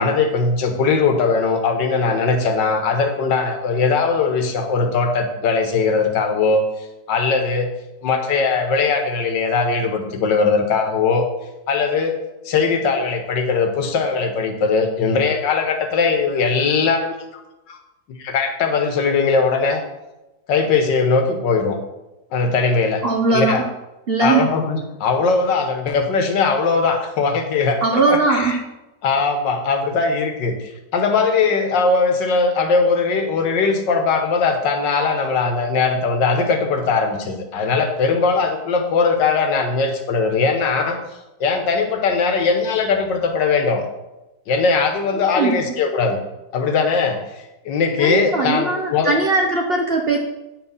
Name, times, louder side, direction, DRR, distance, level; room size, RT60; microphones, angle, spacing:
voice 1, 0.0-6.6 7.1-7.7 8.0-11.3 11.7-12.2 12.5-17.1 17.7-17.8 18.2-19.8 20.5-21.8 22.3-23.0 23.3-23.6 24.2-28.6 29.0-30.5 30.9-41.0 41.4-43.8 44.5-46.2 46.5-49.1, left 4 dB, 85° left, 5 dB, 1.7 m, -20 dB
voice 2, 23.0-23.7 24.1-24.5 27.8-28.6 45.1-45.6 48.0-50.2, right 3 dB, 55° right, 2 dB, 0.7 m, -19 dB
8.7 x 4.5 x 5.4 m, 0.99 s
omnidirectional pair, 1.9 m